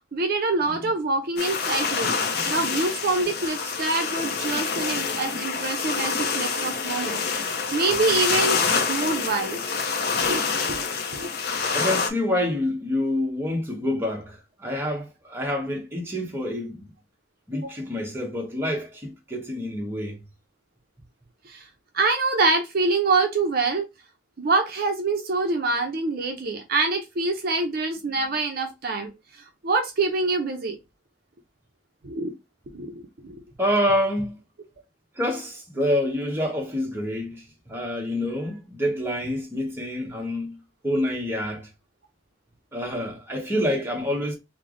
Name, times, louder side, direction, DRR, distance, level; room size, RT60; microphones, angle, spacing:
voice 1, 0.1-2.2 2.5-7.2 7.7-8.6 8.9-9.8 10.2-10.4 10.7-10.8 11.1-11.3 17.6-17.7 21.5-21.7 21.9-23.8 24.4-30.8 32.0-32.3 32.7-33.4, right 3 dB, 50° right, 0.5 m, -25 dB
sound 1, 1.4-12.1, left 5 dB, 55° left, 0.5 m, -26 dB
voice 2, 11.7-16.9 17.5-20.2 28.1-28.2 33.6-34.3 35.2-40.6 40.8-41.7 42.7-44.4, left 1 dB, 10° right, 0.8 m, -27 dB
3.2 x 2.0 x 3.6 m
head